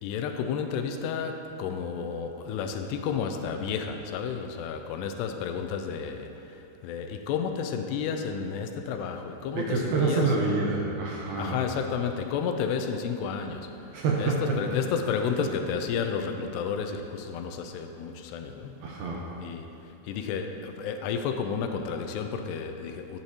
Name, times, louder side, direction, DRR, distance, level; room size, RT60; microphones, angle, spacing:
voice 1, 0.0-6.3 6.8-10.4 11.4-13.7 14.2-18.7 19.4-19.7 20.1-23.2, left 6 dB, 85° left, 6 dB, 2.6 m, -31 dB
voice 2, 9.6-11.6 13.9-14.4 18.8-19.2, right 4 dB, 75° right, -2 dB, 2.3 m, -27 dB
11.5 x 9.0 x 2.8 m, 2.8 s
omnidirectional pair, 4.9 m